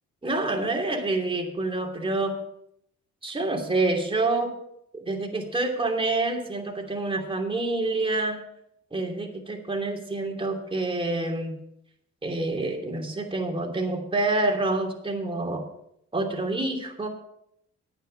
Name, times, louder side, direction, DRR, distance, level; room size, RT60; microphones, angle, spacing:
voice 1, 0.2-2.4 3.2-4.5 5.0-8.4 8.9-11.6 12.2-15.6 16.1-17.1, right 2 dB, 15° right, 1 dB, 2.9 m, -27 dB
10.5 x 9.0 x 5.5 m, 0.74 s
cardioid pair, 90°, 30 cm